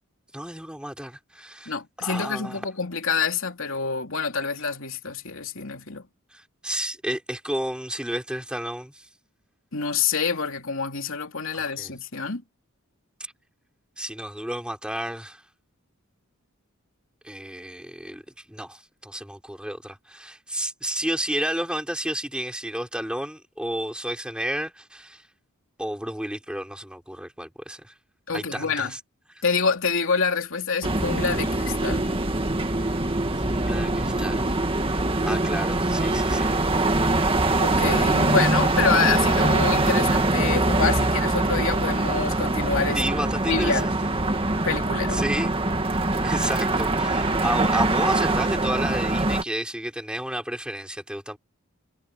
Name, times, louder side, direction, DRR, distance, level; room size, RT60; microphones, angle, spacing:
voice 1, 0.3-1.7 2.0-2.6 6.3-9.1 11.5-11.9 13.2-13.3 14.0-15.4 17.2-18.2 18.5-25.3 25.8-27.9 28.3-29.0 33.3-36.6 42.9-43.9 45.1-45.5 46.2-51.4, right 1 dB, 5° right, 5.1 m, -31 dB
voice 2, 1.7-6.0 9.7-12.4 28.3-28.9 29.4-32.1 37.6-43.0 43.5-43.9 44.6-45.2, left 5 dB, 60° left, 3.2 m, -27 dB
sound 1, 30.8-49.4, right 2 dB, 25° right, 1.9 m, -23 dB
head